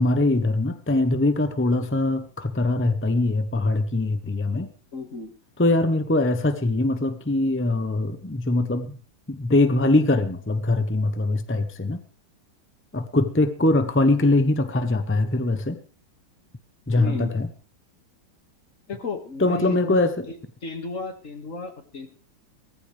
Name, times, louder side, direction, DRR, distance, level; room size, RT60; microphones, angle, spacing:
voice 1, 0.0-4.7 5.6-9.0 9.3-12.0 12.9-15.8 16.9-17.5 19.4-20.3, left 2 dB, 20° left, 9 dB, 0.3 m, -22 dB
voice 2, 4.9-5.3 16.9-17.4 18.9-20.3 20.6-22.1, left 3 dB, 40° left, 5 dB, 2.3 m, -34 dB
18.0 x 14.5 x 3.4 m, 0.37 s
omnidirectional pair, 2.1 m